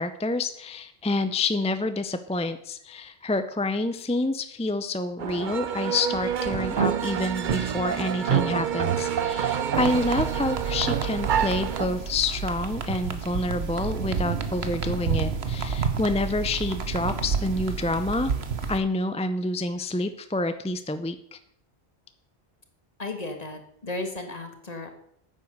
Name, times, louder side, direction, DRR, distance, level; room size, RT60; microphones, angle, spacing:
voice 1, 0.0-18.3 18.7-21.4, left 2 dB, 10° left, 10 dB, 0.4 m, -28 dB
sound 1, 5.2-11.9, right 8 dB, 55° right, 0.7 m, -27 dB
sound 2, 9.7-18.8, right 5 dB, 80° right, 1.4 m, -30 dB
voice 2, 23.0-24.9, left 2 dB, 40° left, 5 dB, 1.8 m, -34 dB
9.6 x 8.2 x 6.6 m, 0.69 s
omnidirectional pair, 1.1 m